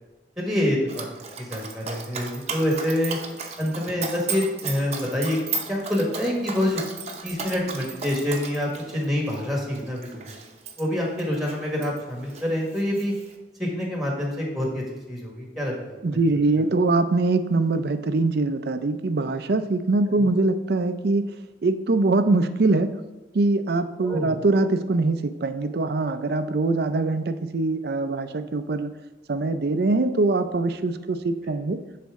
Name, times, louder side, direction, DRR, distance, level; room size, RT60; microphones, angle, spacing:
voice 1, 0.4-1.1 1.4-3.2 3.6-5.4 5.7-6.8 7.2-10.4 10.8-13.1 13.6-16.0 20.1-20.3 24.0-24.3, left 1 dB, ahead, -1 dB, 1.5 m, -26 dB
Dog, 0.9-12.0 12.3-13.3, right 4 dB, 40° right, 0.8 m, -35 dB
voice 2, 16.0-21.3 21.6-23.0 23.3-28.9 29.3-31.8, right 3 dB, 60° right, 10 dB, 0.5 m, -23 dB
10.5 x 4.2 x 3.6 m, 1.2 s
head